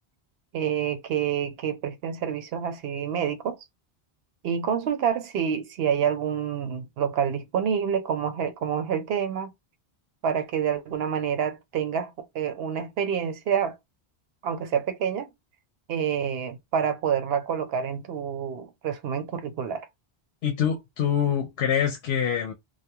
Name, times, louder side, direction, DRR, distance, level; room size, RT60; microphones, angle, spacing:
voice 1, 0.5-3.6 4.4-9.5 10.2-13.7 14.4-15.3 15.9-19.9, right 8 dB, 75° right, 0.8 m, -27 dB
voice 2, 20.4-22.5, left 8 dB, 80° left, 0.8 m, -25 dB
2.9 x 2.1 x 2.2 m
omnidirectional pair, 1.1 m